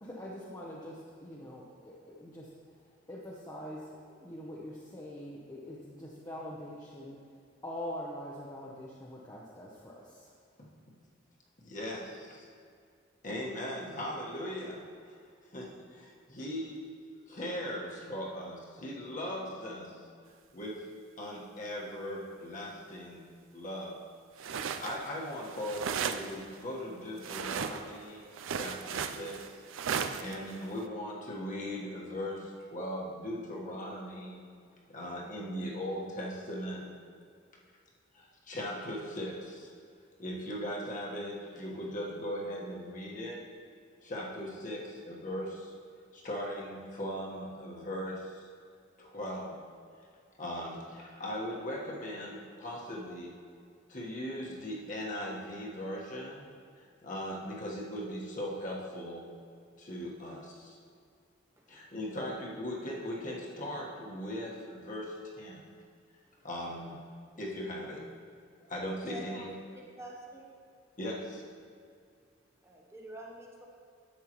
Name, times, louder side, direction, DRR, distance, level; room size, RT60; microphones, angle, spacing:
voice 1, 0.0-2.5 3.1-3.9 4.2-7.2 7.6-10.3, left 1 dB, 20° left, -5 dB, 0.8 m, -43 dB
voice 2, 11.6-12.5 13.2-14.8 15.1-15.2 15.5-16.8 17.3-20.0 20.5-20.9 21.2-23.2 23.5-24.0 24.4-29.6 30.2-34.4 34.9-36.9 38.1-39.7 40.2-43.4 44.0-45.7 46.1-48.5 49.0-49.6 50.4-53.3 53.9-56.5 56.8-59.3 59.8-60.8 61.7-65.6 66.4-67.0 67.4-68.0 68.6-69.4 71.0-71.4, equal, 40° left, -3 dB, 1.3 m, -39 dB
sound 1, 24.4-25.1 25.3-26.5 27.2-28.0 28.3-30.8, right 7 dB, 90° right, 0.4 m, -35 dB
voice 3, 61.6-62.0 66.2-66.5 69.0-69.6 70.0-70.5 72.6-73.7, right 1 dB, 15° right, -1 dB, 0.7 m, -47 dB
10.5 x 7.3 x 3.0 m, 2.2 s
head